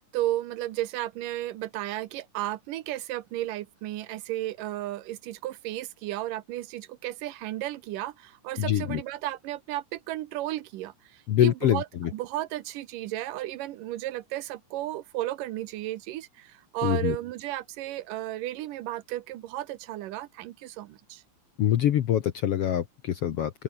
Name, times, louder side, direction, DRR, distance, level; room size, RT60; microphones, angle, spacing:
voice 1, 0.0-21.2, right 15 dB, 80° right, 2.6 m, -34 dB
voice 2, 8.6-9.0 11.3-12.1 16.8-17.2 21.6-23.5, left 11 dB, 65° left, 1.6 m, -24 dB
open air
omnidirectional pair, 3.8 m